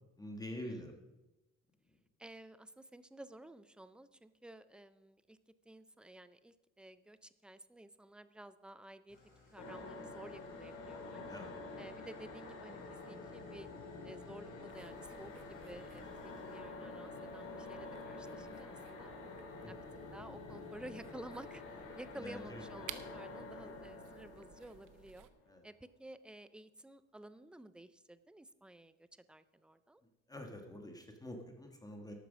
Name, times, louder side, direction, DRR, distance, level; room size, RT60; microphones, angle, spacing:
voice 1, 0.2-0.9 11.1-11.8 19.6-19.7 22.1-22.6 25.5-25.6 30.3-32.1, left 1 dB, 10° left, 3 dB, 1.4 m, -46 dB
voice 2, 2.2-5.4 5.7-9.2 9.5-11.2 11.8-13.7 14.0-19.1 19.7-19.8 20.1-21.6 22.0-25.3 25.6-30.0, right 1 dB, 5° right, 13 dB, 0.4 m, -53 dB
Engine starting / Idling, 9.1-16.6, left 2 dB, 30° left, 4.4 m, -65 dB
sound 1, 9.6-25.5, left 3 dB, 80° left, 3.0 m, -48 dB
sound 2, 14.7-25.3, right 12 dB, 90° right, 0.9 m, -57 dB
12.0 x 9.1 x 6.1 m, 1.0 s
cardioid pair, 150°, 30 cm